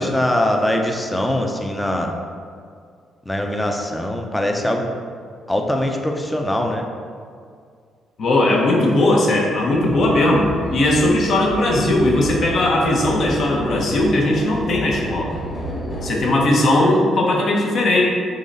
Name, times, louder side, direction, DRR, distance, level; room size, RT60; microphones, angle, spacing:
voice 1, 0.0-2.1 3.3-4.9 5.5-6.8, left 1 dB, 10° left, 2 dB, 0.5 m, -22 dB
voice 2, 8.2-15.3 16.0-18.0, left 1 dB, 60° left, -2 dB, 0.9 m, -18 dB
sound 1, 9.7-16.2, right 1 dB, 30° left, 1.3 m, -31 dB
3.9 x 3.1 x 3.9 m, 2.1 s
cardioid pair, 90°, 0 cm